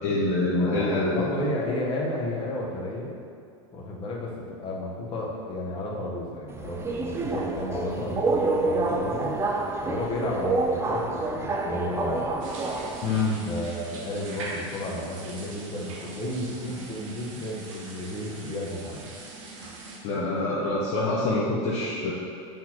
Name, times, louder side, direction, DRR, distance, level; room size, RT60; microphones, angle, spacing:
voice 1, 0.0-1.3 13.0-13.4 20.0-22.1, left 2 dB, 45° left, -6 dB, 0.9 m, -25 dB
voice 2, 0.5-3.1 3.7-9.3 9.8-12.4 13.5-19.1, left 1 dB, 30° left, -3 dB, 1.3 m, -32 dB
Subway metro underground, 6.5-13.3, right 3 dB, 15° right, 0.4 m, -28 dB
sound 1, 12.4-20.0, right 2 dB, 80° right, 1.2 m, -41 dB
8.4 x 4.0 x 3.0 m, 2.5 s
supercardioid pair, 125°, 16 cm